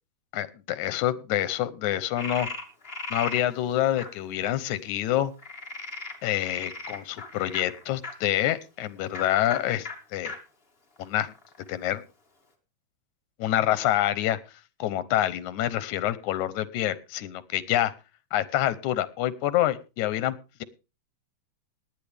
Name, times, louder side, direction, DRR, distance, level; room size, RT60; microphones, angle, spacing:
voice 1, 0.3-2.5 3.1-5.3 6.2-10.3 11.0-11.3 11.7-12.0 13.4-14.4 14.8-17.9 18.3-20.6, left 13 dB, 85° left, 16 dB, 2.3 m, -27 dB
Frog, 2.2-3.4 4.0-4.1 5.4-8.1 9.1-9.2 9.5-9.6 9.8-9.9 10.2-10.4 11.0-11.7, left 3 dB, 20° left, 2.0 m, -37 dB
18.5 x 10.5 x 3.4 m, 0.30 s
omnidirectional pair, 3.3 m